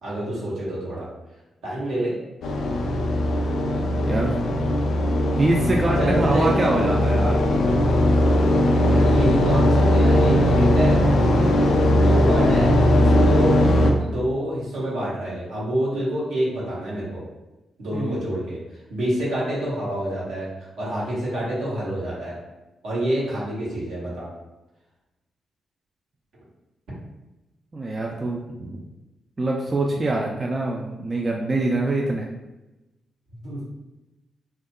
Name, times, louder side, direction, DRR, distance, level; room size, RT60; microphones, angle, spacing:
voice 1, 0.0-1.1 1.6-2.2 6.0-6.5 8.8-11.0 11.9-13.6 14.0-17.2 17.8-18.6 18.9-22.4 22.8-24.3 33.3-33.6, right 1 dB, 75° right, -7 dB, 1.0 m, -27 dB
sound 1, 2.4-13.9, left 1 dB, 70° left, 0.4 m, -19 dB
voice 2, 4.0-4.4 5.3-7.5 17.9-18.2 27.7-28.8 29.4-32.3, right 2 dB, 35° right, -1 dB, 0.3 m, -24 dB
2.7 x 2.3 x 2.2 m, 1.0 s
hypercardioid pair, 40°, 0 cm